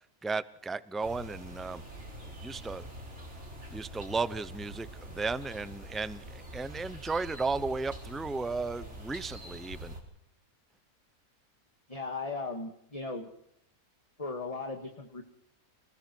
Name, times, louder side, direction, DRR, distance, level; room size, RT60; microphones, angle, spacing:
voice 1, 0.2-1.8 2.4-2.9 3.7-9.9, right 3 dB, ahead, 0.4 m, -34 dB
sound 1, 1.0-10.0, right 1 dB, 50° right, 5.1 m, -45 dB
voice 2, 11.9-13.3 14.2-15.2, left 3 dB, 25° left, 2.0 m, -37 dB
30.0 x 20.0 x 4.6 m
omnidirectional pair, 1.5 m